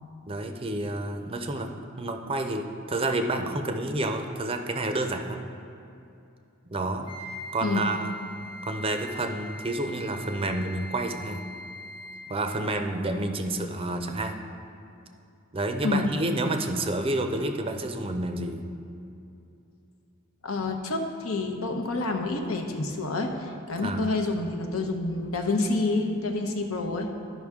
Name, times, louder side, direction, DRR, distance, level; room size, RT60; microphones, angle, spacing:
voice 1, 0.3-1.7 2.0-5.4 6.7-7.1 7.5-8.1 8.6-11.5 12.3-14.4 15.5-18.7 23.8-24.1, right 2 dB, 25° right, 6 dB, 0.5 m, -29 dB
Wind instrument woodwind instrument, 7.1-12.4, left 1 dB, 25° left, 1.0 m, -42 dB
voice 2, 20.4-27.1, left 3 dB, 80° left, 3 dB, 0.9 m, -28 dB
13.0 x 5.5 x 3.6 m, 2.7 s
head